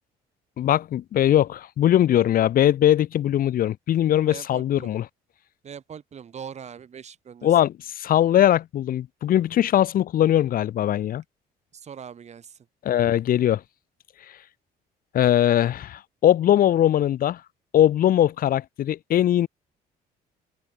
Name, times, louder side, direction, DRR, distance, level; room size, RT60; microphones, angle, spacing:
voice 1, 0.6-5.0 7.4-11.2 12.8-13.6 15.1-17.4 17.7-19.5, left 11 dB, 60° left, 1.8 m, -20 dB
voice 2, 4.3-4.9 5.6-7.6 11.7-12.6, right 7 dB, 40° right, 4.9 m, -41 dB
cardioid pair, 110°, 17 cm